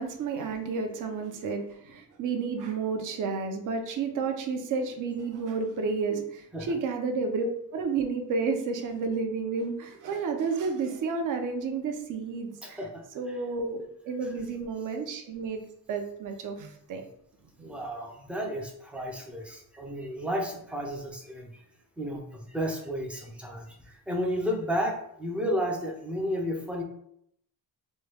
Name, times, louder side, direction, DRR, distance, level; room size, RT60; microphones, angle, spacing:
voice 1, 0.0-12.8 13.1-15.6 15.9-17.0 17.6-17.7, right 4 dB, 50° right, 5 dB, 0.6 m, -31 dB
voice 2, 12.6-13.4 17.6-21.5 22.0-26.8, equal, 5° right, 0 dB, 0.5 m, -32 dB
3.1 x 2.3 x 3.3 m, 0.72 s
cardioid pair, 135°, 42 cm